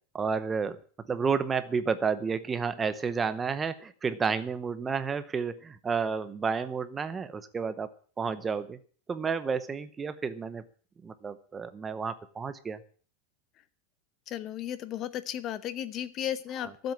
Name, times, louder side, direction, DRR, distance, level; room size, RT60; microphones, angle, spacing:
voice 1, 0.1-0.8 1.1-7.9 8.2-8.8 9.1-10.6 11.0-12.8 16.6-16.7, right 5 dB, 10° right, 12 dB, 0.8 m, -31 dB
voice 2, 14.3-16.9, left 10 dB, 25° left, 15 dB, 0.8 m, -34 dB
12.5 x 7.9 x 8.6 m, 0.43 s
supercardioid pair, 175°, 0 cm